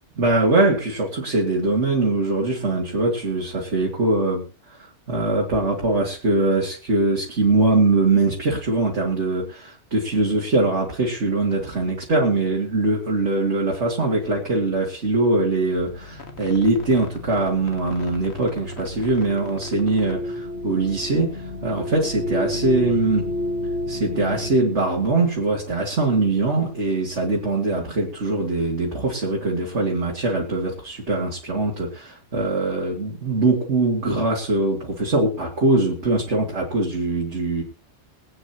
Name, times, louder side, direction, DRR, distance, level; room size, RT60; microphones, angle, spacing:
voice 1, 0.2-4.4 4.7-4.8 5.1-23.3 23.9-37.6, right 2 dB, 80° right, -2 dB, 3.0 m, -22 dB
sound 1, 15.8-24.5, left 1 dB, 70° left, 2.0 m, -31 dB
24.0 x 9.1 x 3.0 m, 0.34 s
omnidirectional pair, 1.2 m